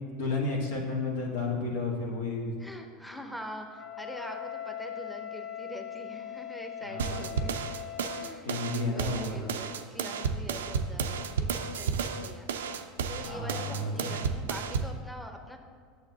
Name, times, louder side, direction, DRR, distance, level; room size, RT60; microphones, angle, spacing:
voice 1, 0.2-2.5 6.8-7.6 8.4-9.6 13.2-14.2, left 2 dB, 80° left, -1 dB, 1.4 m, -32 dB
voice 2, 2.6-7.6 8.1-8.5 8.7-12.7 13.1-15.6, equal, ahead, 4 dB, 0.7 m, -44 dB
Wind instrument woodwind instrument, 3.8-8.4, left 10 dB, 45° left, 0.7 m, -40 dB
sound 1, 7.0-15.0, right 5 dB, 90° right, 0.4 m, -32 dB
8.8 x 6.6 x 2.8 m, 2.1 s
hypercardioid pair, 95°, 0 cm